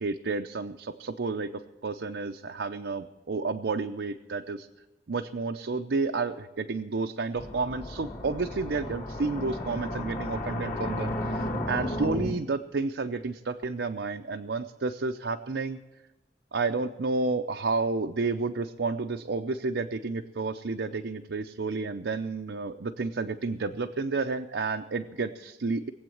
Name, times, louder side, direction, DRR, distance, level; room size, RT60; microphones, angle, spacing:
voice 1, 0.0-4.7 5.1-15.8 16.5-25.9, right 3 dB, 80° right, 5 dB, 0.6 m, -31 dB
entrance gong, 7.4-12.3, left 1 dB, 50° left, 2.4 m, -33 dB
19.5 x 8.1 x 7.8 m, 1.1 s
head